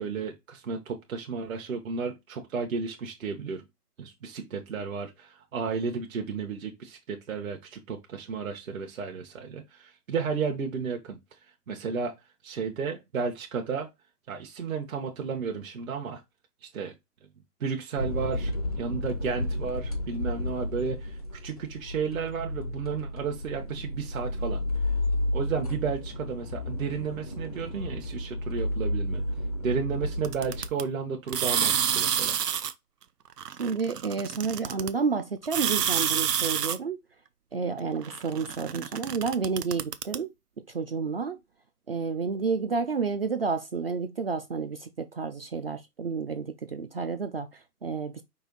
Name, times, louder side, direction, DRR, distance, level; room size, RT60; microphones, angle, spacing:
voice 1, 0.0-3.6 4.0-11.2 11.7-12.1 12.4-13.9 14.3-16.2 16.7-16.9 17.6-24.6 25.3-29.2 29.6-32.4, right 5 dB, 60° right, 1.2 m, -33 dB
sound 1, 18.0-30.7, left 1 dB, 25° left, 0.4 m, -32 dB
sound 2, 30.2-30.8 31.3-32.7 33.4-34.9 35.4-36.8 38.0-40.2, right 8 dB, 80° right, 0.7 m, -28 dB
voice 2, 33.6-37.0 37.5-40.3 40.7-41.4 41.9-48.2, right 5 dB, 40° right, 0.4 m, -30 dB
5.4 x 2.6 x 3.8 m
hypercardioid pair, 140°, 47 cm